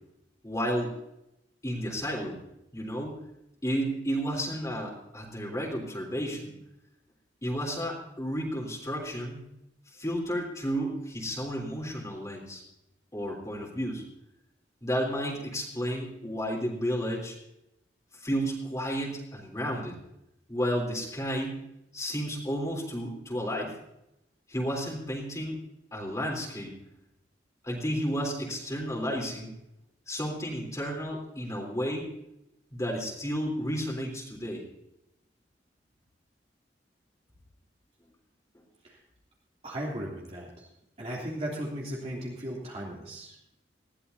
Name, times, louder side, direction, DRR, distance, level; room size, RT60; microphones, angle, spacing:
voice 1, 0.4-1.0 1.6-2.4 2.7-3.2 3.6-6.5 7.4-9.4 9.9-12.6 13.1-14.0 14.8-17.4 18.2-20.0 20.5-21.6 21.9-23.7 24.5-25.6 25.9-26.7 27.6-29.5 30.1-32.1 32.7-34.6, equal, 20° left, -2 dB, 3.4 m, -32 dB
voice 2, 39.6-40.7 41.0-43.4, right 1 dB, 35° right, -4 dB, 3.1 m, -36 dB
20.0 x 15.5 x 2.8 m, 0.83 s
head